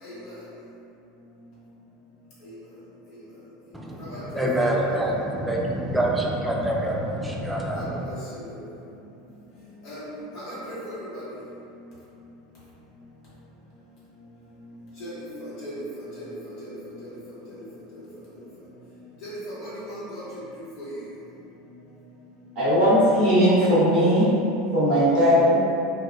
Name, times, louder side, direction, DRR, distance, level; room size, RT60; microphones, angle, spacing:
voice 1, 0.0-0.3 2.4-2.5 4.0-5.0 7.7-8.2 9.8-10.1 10.3-11.2 15.0-16.3 16.6-16.7 17.0-17.1 19.2-20.2 20.7-20.9 25.0-25.2, equal, 55° left, -11 dB, 1.2 m, -37 dB
voice 2, 3.7-7.9, right 1 dB, 5° right, -2 dB, 0.4 m, -26 dB
voice 3, 22.5-24.3 24.7-25.5, equal, 50° right, -12 dB, 0.9 m, -18 dB
2.8 x 2.2 x 2.3 m, 2.8 s
figure-of-eight pair, 80°, 0 cm